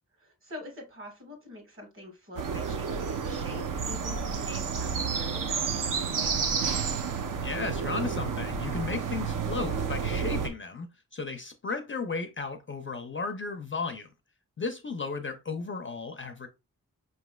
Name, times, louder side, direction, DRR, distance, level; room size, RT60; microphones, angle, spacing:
voice 1, 0.2-6.5, left 1 dB, 35° right, 1.5 m, -45 dB
sound 1, 2.4-10.5, right 6 dB, 65° right, 0.6 m, -30 dB
voice 2, 7.4-10.9 11.1-14.1 14.6-16.5, left 4 dB, 35° left, 0.4 m, -34 dB
5.3 x 3.0 x 2.2 m
wide cardioid pair, 155°, 35 cm